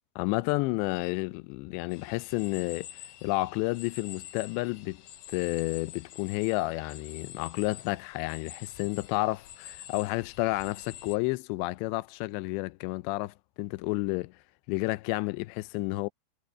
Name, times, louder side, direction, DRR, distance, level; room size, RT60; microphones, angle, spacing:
voice 1, 0.2-2.9 3.2-5.0 5.3-14.3 14.7-16.1, left 22 dB, 90° left, 2.8 m, -31 dB
sound 1, 1.9-11.2, left 12 dB, 70° left, 2.5 m, -47 dB
omnidirectional pair, 4.9 m